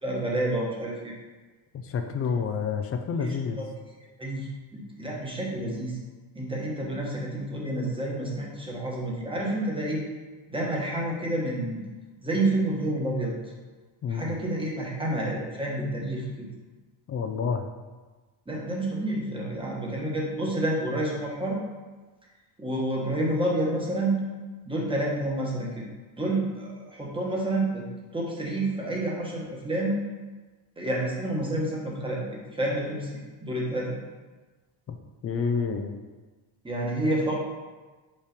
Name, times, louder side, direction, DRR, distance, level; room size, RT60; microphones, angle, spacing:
voice 1, 0.0-1.2 3.2-3.7 4.2-6.0 6.3-10.0 10.5-11.8 12.2-13.3 14.1-16.5 18.5-21.6 22.6-24.2 24.6-25.8 26.2-27.9 28.1-30.0 30.8-32.2 32.5-34.0 36.6-37.3, right 1 dB, 10° right, -3 dB, 1.2 m, -29 dB
voice 2, 1.8-3.7 14.0-14.2 17.1-17.7 34.9-35.0 35.2-35.9, left 6 dB, 30° left, 6 dB, 0.4 m, -28 dB
5.4 x 4.9 x 5.1 m, 1.3 s
cardioid pair, 160°, 49 cm